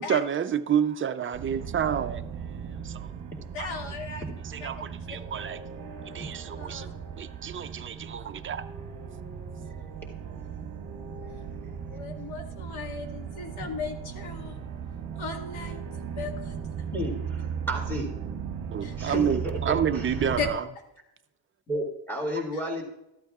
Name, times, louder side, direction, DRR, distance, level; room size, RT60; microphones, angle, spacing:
voice 1, 0.0-3.1 3.6-3.7 4.4-5.6 6.1-6.9 7.2-8.6 18.7-20.6, right 8 dB, 30° right, 0.4 m, -29 dB
sound 1, 1.3-20.5, right 7 dB, 45° right, 1.0 m, -37 dB
voice 2, 3.5-4.2 4.6-4.9 6.6-6.9 9.8-10.0 11.9-14.6 15.2-15.8 16.2-16.5 18.8-19.2 20.4-20.5, left 5 dB, 90° left, 1.8 m, -36 dB
voice 3, 16.9-18.1 19.0-20.1 21.7-22.8, equal, 5° left, 2.1 m, -32 dB
13.5 x 11.5 x 2.4 m
cardioid pair, 165°, 47 cm